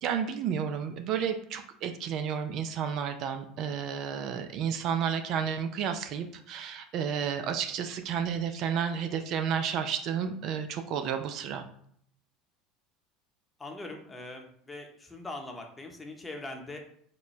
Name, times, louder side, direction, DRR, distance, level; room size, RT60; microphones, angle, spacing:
voice 1, 0.0-11.6, right 7 dB, 55° right, 8 dB, 0.4 m, -31 dB
voice 2, 13.6-16.8, left 2 dB, 15° left, 3 dB, 0.8 m, -41 dB
4.2 x 2.2 x 3.1 m, 0.64 s
hypercardioid pair, 85°, 0 cm